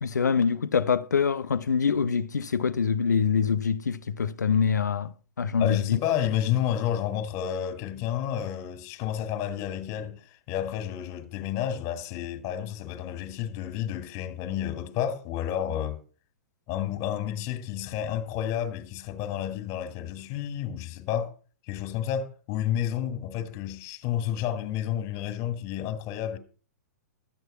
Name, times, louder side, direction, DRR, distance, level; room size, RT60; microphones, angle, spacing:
voice 1, 0.0-6.0, left 6 dB, 85° left, 0.7 m, -25 dB
voice 2, 5.6-10.2 10.5-16.0 16.7-21.3 21.7-26.4, left 10 dB, 35° left, 2.1 m, -30 dB
13.0 x 8.1 x 5.5 m
hypercardioid pair, 115°, 9 cm